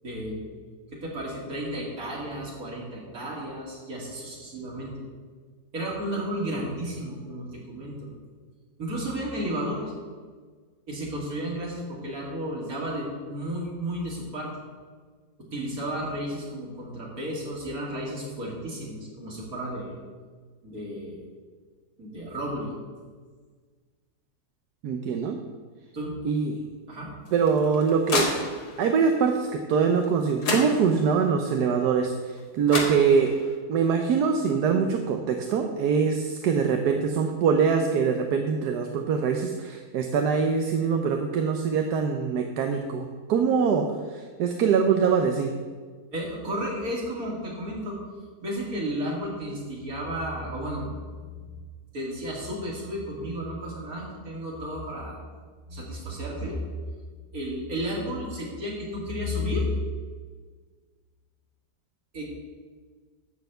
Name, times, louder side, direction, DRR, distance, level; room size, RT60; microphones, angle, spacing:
voice 1, 0.0-0.4 0.9-5.0 5.7-8.1 8.8-9.9 10.9-14.5 15.5-19.9 20.6-21.2 22.0-22.7 25.9-26.1 26.9-27.1 46.1-48.0 48.4-51.5 51.9-55.2 55.7-56.8 57.3-59.7 62.1-62.2, equal, 65° right, -3 dB, 3.0 m, -33 dB
voice 2, 24.8-25.4 26.2-26.6 27.3-28.2 28.8-32.1 32.5-33.3 33.7-43.8 44.4-45.5, right 6 dB, 85° right, 4 dB, 1.3 m, -23 dB
sound 1, 27.3-28.9 30.0-30.1 30.4-31.2 32.4-32.5 32.7-33.5, left 3 dB, 80° left, 2.2 m, -30 dB
12.0 x 4.3 x 7.9 m, 1.5 s
omnidirectional pair, 1.7 m